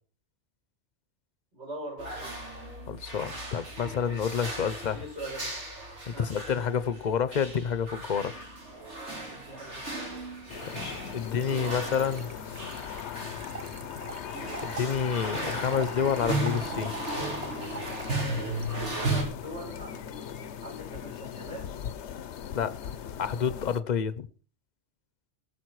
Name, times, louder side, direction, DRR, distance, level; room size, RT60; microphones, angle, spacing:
voice 1, 1.5-2.4 4.9-5.7 6.1-6.3 9.3-10.1 18.9-21.7, right 1 dB, 70° right, 7.2 m, -42 dB
sound 1, 2.0-19.2, right 2 dB, 90° right, 3.6 m, -36 dB
voice 2, 2.9-5.0 6.1-8.4 10.7-12.3 14.6-16.9 22.5-22.8 23.2-24.3, left 7 dB, 45° left, 0.8 m, -29 dB
sound 2, 10.5-23.8, left 9 dB, 80° left, 1.0 m, -39 dB
Trickle dribble / Fill (with liquid), 11.3-18.7, right 6 dB, 40° right, 0.7 m, -43 dB
19.0 x 6.8 x 4.7 m
omnidirectional pair, 1.1 m